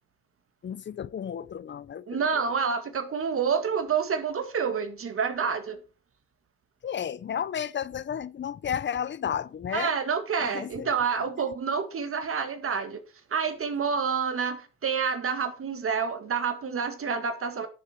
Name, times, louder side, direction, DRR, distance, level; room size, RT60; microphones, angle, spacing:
voice 1, 0.6-2.2 6.8-9.9 10.4-10.9, left 8 dB, 40° left, 0.6 m, -32 dB
voice 2, 2.1-5.8 9.7-13.0 13.3-17.7, right 6 dB, 45° right, 2.0 m, -28 dB
10.5 x 6.8 x 4.6 m
cardioid pair, 90°, 30 cm